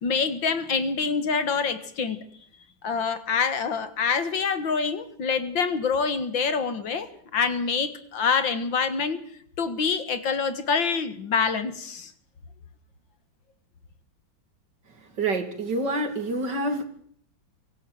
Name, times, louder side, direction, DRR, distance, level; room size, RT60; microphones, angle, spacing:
voice 1, 0.0-2.2 2.8-7.1 7.3-9.2 9.6-12.1, left 5 dB, 75° left, 11 dB, 2.5 m, -26 dB
voice 2, 15.2-16.8, right 2 dB, 60° right, 8 dB, 3.3 m, -27 dB
24.5 x 14.0 x 9.4 m, 0.62 s
omnidirectional pair, 2.1 m